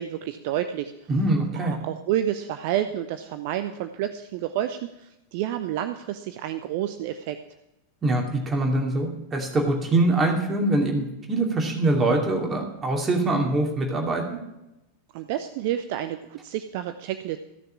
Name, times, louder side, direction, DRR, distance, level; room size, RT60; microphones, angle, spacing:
voice 1, 0.0-1.1 1.5-7.4 15.1-17.4, right 11 dB, 50° right, 9 dB, 0.7 m, -29 dB
voice 2, 1.1-1.8 8.0-14.2, right 2 dB, 20° right, 2 dB, 2.6 m, -23 dB
15.0 x 6.7 x 8.5 m, 0.91 s
figure-of-eight pair, 90°, 0 cm